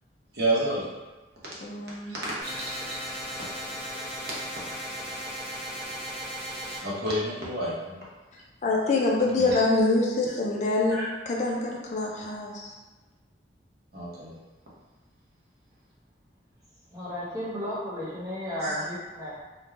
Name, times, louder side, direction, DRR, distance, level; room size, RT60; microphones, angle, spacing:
voice 1, 0.3-0.8 2.0-3.0 6.8-8.0 9.3-9.6 10.9-11.0 13.9-14.3 18.6-18.8, right 1 dB, 60° right, -6 dB, 0.8 m, -30 dB
voice 2, 1.6-2.2 8.6-11.0 11.3-12.7, left 2 dB, 40° left, -1 dB, 0.3 m, -25 dB
sound 1, 2.4-6.8, equal, 10° left, 1.4 m, -36 dB
voice 3, 16.9-19.3, left 1 dB, 20° right, -8 dB, 0.7 m, -34 dB
3.0 x 2.2 x 2.4 m, 1.2 s
head